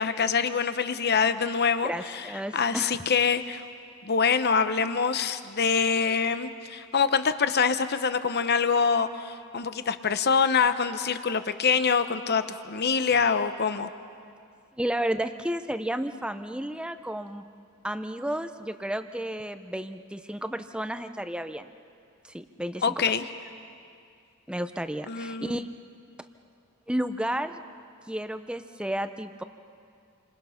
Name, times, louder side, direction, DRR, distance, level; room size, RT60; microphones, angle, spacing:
voice 1, 0.0-2.2 2.5-3.6 4.0-13.9 22.8-23.2 25.1-25.6, left 5 dB, 45° left, 10 dB, 0.9 m, -25 dB
voice 2, 1.8-3.0 14.8-17.5 17.8-21.7 22.3-23.0 24.5-25.7 26.9-27.6 28.1-29.4, right 1 dB, 5° right, 9 dB, 0.7 m, -32 dB
29.0 x 26.0 x 5.8 m, 2.3 s
head